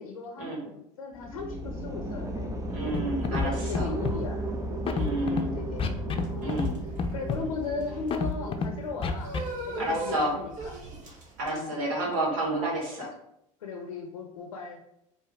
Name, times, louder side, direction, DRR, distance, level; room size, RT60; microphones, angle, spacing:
voice 1, 0.0-2.6 3.3-4.4 5.2-5.8 6.3-6.7 7.1-9.3 9.6-10.7 11.5-11.7 13.6-14.8, left 4 dB, 90° left, 3 dB, 0.5 m, -37 dB
sound 1, 1.1-11.1, right 1 dB, 20° right, 0.8 m, -36 dB
voice 2, 2.7-3.9 4.9-5.6 6.4-6.7 9.8-10.3 11.4-13.1, right 1 dB, 75° right, -2 dB, 1.5 m, -30 dB
Scratching (performance technique), 2.9-3.0 3.2-3.5 3.7-4.2 4.8-5.4 5.8-6.2 6.5-6.7 7.0-7.4 8.1-8.7 9.0-9.4, left 5 dB, 30° left, 0.5 m, -28 dB
sound 2, 6.2-11.5, right 2 dB, 45° right, 1.3 m, -40 dB
4.6 x 2.6 x 3.5 m, 0.79 s
hypercardioid pair, 75°, 18 cm